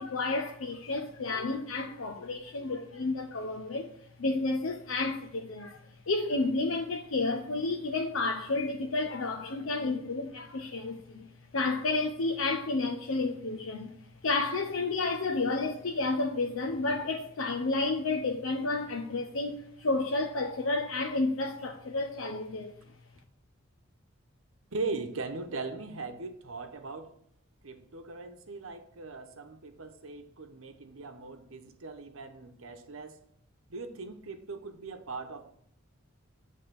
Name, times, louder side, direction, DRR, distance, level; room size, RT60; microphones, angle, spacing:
voice 1, 0.0-3.9 4.2-5.8 6.1-13.9 14.2-22.7, left 3 dB, 80° left, 0.7 m, -31 dB
voice 2, 24.7-27.2 27.6-33.2 33.7-35.5, right 3 dB, 80° right, 0.9 m, -39 dB
8.8 x 3.5 x 6.8 m
head